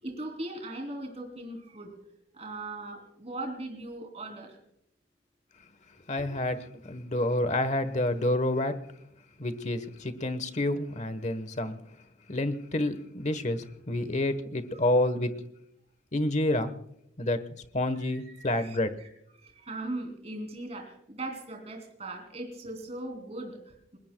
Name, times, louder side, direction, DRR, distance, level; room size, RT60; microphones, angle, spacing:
voice 1, 0.0-2.0 2.3-4.6 17.9-19.1 19.4-24.0, right 2 dB, 35° right, 3.2 m, -39 dB
voice 2, 6.1-8.8 9.4-11.8 12.3-15.4 16.1-16.7 17.2-18.9, left 1 dB, 40° left, 1.1 m, -29 dB
29.0 x 21.0 x 2.3 m
head